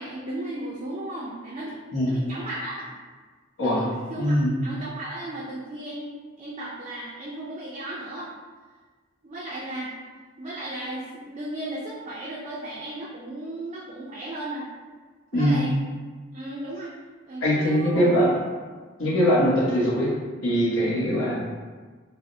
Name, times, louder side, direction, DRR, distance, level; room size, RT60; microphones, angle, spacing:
voice 1, 0.0-3.0 3.6-6.1 6.4-8.3 9.2-10.0 10.4-14.7 15.3-15.7 16.3-16.9 17.3-18.3, right 1 dB, 35° right, -6 dB, 0.3 m, -35 dB
voice 2, 4.1-4.6 15.3-15.6 17.4-18.3 19.0-20.1 20.4-21.4, equal, 75° left, -6 dB, 0.9 m, -22 dB
3.3 x 2.0 x 2.5 m, 1.4 s
head